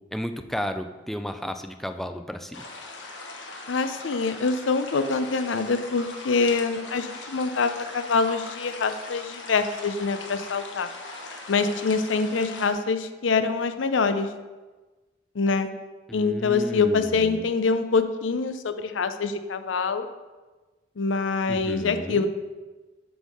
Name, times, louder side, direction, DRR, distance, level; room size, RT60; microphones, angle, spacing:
voice 1, 0.1-2.6 16.1-17.5 21.5-22.3, equal, ahead, 7 dB, 0.3 m, -33 dB
sound 1, 2.5-12.7, left 3 dB, 65° left, 1.1 m, -40 dB
voice 2, 3.7-10.9 11.5-14.3 15.4-15.7 16.1-20.1 21.0-22.3, left 4 dB, 90° left, 10 dB, 0.6 m, -25 dB
7.9 x 3.6 x 6.2 m, 1.2 s
head